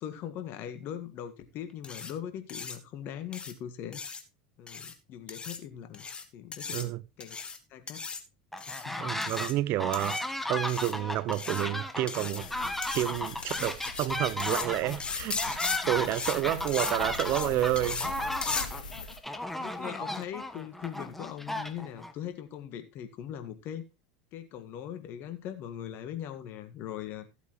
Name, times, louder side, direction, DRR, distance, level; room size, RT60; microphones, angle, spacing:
voice 1, 0.0-4.0 4.6-6.1 6.3-7.4 7.7-8.0 8.7-9.3 19.6-23.8 24.3-27.3, left 10 dB, 50° left, 2.0 m, -40 dB
sound 1, 1.8-2.1 2.5-2.8 3.3-3.5 3.9-4.2 4.7-4.9 5.3-5.6 5.9-6.2 6.5-6.8 7.2-7.6 7.9-8.2 8.6-8.8 9.2-9.5 9.9-10.2 10.7-10.9 11.3-11.6 12.1-12.4 12.8-13.0 13.4-14.1 14.4-14.7 15.0-15.8 16.1-16.4 16.7-16.9 17.2-17.5 17.8-18.1 18.4-18.7, left 5 dB, 20° left, 1.8 m, -36 dB
sound 2, 8.5-9.5 9.8-22.1, left 1 dB, 5° left, 1.3 m, -35 dB
voice 2, 9.0-10.2 10.5-12.5 12.9-18.1, right 15 dB, 50° right, 0.6 m, -30 dB
sound 3, 12.4-19.2, left 5 dB, 85° left, 2.7 m, -43 dB
15.0 x 8.2 x 3.1 m
hypercardioid pair, 95°, 4 cm